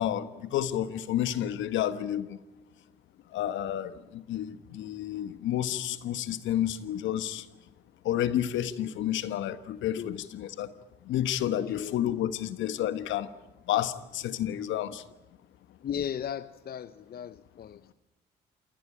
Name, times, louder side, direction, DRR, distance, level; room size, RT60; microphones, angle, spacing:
voice 1, 0.0-2.4 3.3-7.4 8.0-10.7 11.1-13.3 13.7-15.0, left 11 dB, 70° left, 13 dB, 1.3 m, -30 dB
voice 2, 11.6-12.0 15.8-17.9, left 9 dB, 50° left, 15 dB, 0.8 m, -36 dB
28.0 x 19.0 x 8.9 m, 1.0 s
hypercardioid pair, 50°, 20 cm